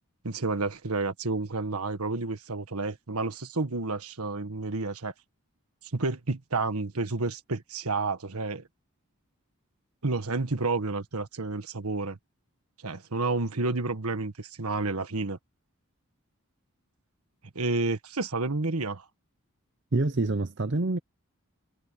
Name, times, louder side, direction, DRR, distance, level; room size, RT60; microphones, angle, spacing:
voice 1, 0.2-5.1 5.9-8.7 10.0-12.2 12.8-15.4 17.5-19.0, right 3 dB, 90° right, 1.6 m, -30 dB
voice 2, 19.9-21.0, right 2 dB, 50° right, 0.7 m, -26 dB
head